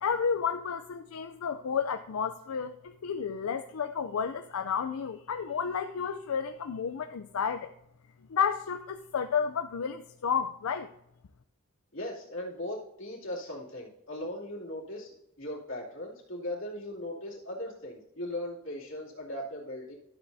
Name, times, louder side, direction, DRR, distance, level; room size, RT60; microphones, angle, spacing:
voice 1, 0.0-7.7 8.3-10.9, left 6 dB, 85° left, 8 dB, 0.5 m, -31 dB
voice 2, 11.9-19.9, left 1 dB, 65° left, -3 dB, 2.7 m, -38 dB
12.5 x 7.9 x 2.7 m, 0.81 s
head